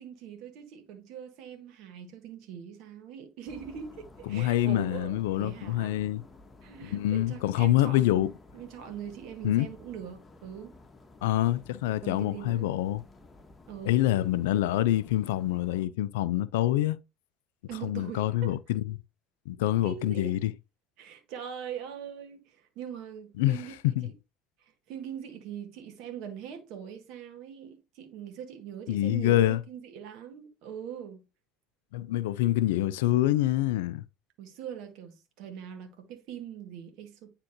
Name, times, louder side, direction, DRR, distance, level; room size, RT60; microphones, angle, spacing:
voice 1, 0.0-6.0 6.6-10.7 12.0-12.7 13.7-14.0 17.7-18.5 19.8-20.4 21.0-23.7 24.0-24.1 24.6-31.2 34.4-37.3, right 8 dB, 60° right, 1.6 m, -42 dB
sound 1, 3.5-15.9, left 3 dB, 20° left, 1.5 m, -53 dB
voice 2, 4.3-6.2 6.9-8.3 9.4-9.7 11.2-13.0 13.9-17.0 17.8-19.0 19.5-20.5 23.4-23.6 24.0-24.1 28.9-29.6 31.9-34.0, left 14 dB, 75° left, 0.4 m, -26 dB
9.5 x 3.7 x 3.0 m
hypercardioid pair, 70°, 0 cm